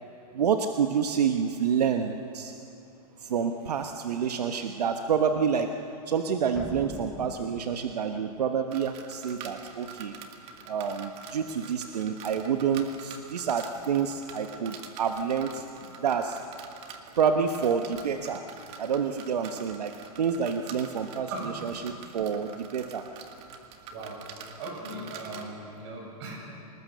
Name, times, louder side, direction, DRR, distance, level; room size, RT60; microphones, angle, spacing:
voice 1, 0.3-2.5 3.3-5.7 6.1-10.1 10.7-15.6 16.0-16.4 17.2-18.4 18.8-19.9 20.2-23.0, right 7 dB, 85° right, 6 dB, 1.2 m, -28 dB
sound 1, 6.5-8.3, left 1 dB, ahead, 0.8 m, -42 dB
sound 2, 8.7-25.5, right 6 dB, 30° right, 2.0 m, -46 dB
voice 2, 23.9-24.3 24.6-26.3, right 2 dB, 45° right, 0 dB, 7.8 m, -38 dB
28.0 x 19.5 x 6.8 m, 2.7 s
hypercardioid pair, 145°, 20 cm